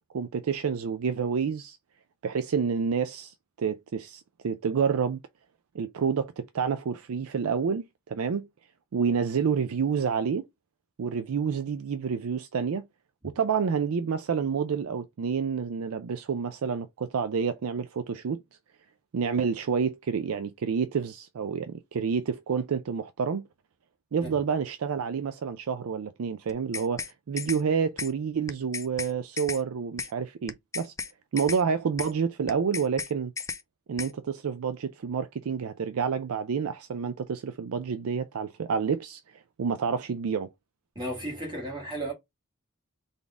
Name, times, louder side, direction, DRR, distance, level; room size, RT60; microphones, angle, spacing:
voice 1, 0.1-1.8 2.2-5.2 5.7-8.5 8.9-10.5 11.0-12.9 13.2-18.4 19.1-23.5 24.1-30.9 31.3-33.3 33.9-40.5, right 6 dB, 75° right, 0.4 m, -29 dB
sound 1, 26.5-27.1 27.4-27.6 28.0-28.1 28.5-29.1 29.4-29.6 30.0-30.1 30.5-31.1 31.4-31.6 32.0-32.1 32.5-33.1 33.4-33.6 34.0-34.1, left 5 dB, 15° left, 0.4 m, -34 dB
voice 2, 40.9-42.1, right 1 dB, 20° right, 1.7 m, -34 dB
4.0 x 3.5 x 3.5 m
head